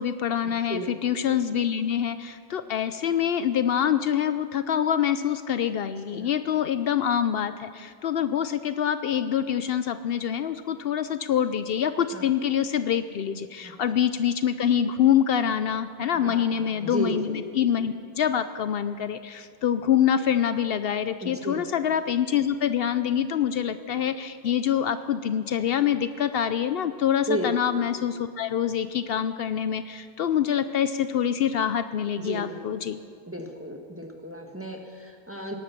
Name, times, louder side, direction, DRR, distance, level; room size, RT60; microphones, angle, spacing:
voice 1, 0.0-33.0, left 9 dB, 70° left, 12 dB, 0.8 m, -25 dB
voice 2, 16.2-17.3 21.2-21.7 27.3-27.5 32.2-32.7 33.3-35.5, right 1 dB, 15° right, 2 dB, 1.6 m, -33 dB
18.0 x 12.5 x 6.0 m, 2.1 s
omnidirectional pair, 1.0 m